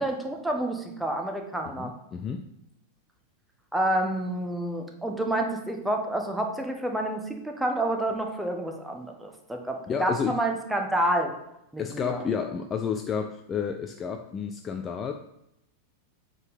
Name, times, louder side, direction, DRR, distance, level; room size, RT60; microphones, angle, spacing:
voice 1, 0.0-1.9 3.7-11.3 11.7-12.2, right 1 dB, 5° right, 3 dB, 1.1 m, -29 dB
voice 2, 1.8-2.5 9.9-10.4 11.8-15.1, left 7 dB, 25° left, 5 dB, 0.5 m, -31 dB
7.9 x 3.9 x 5.6 m, 0.81 s
figure-of-eight pair, 90°, 0 cm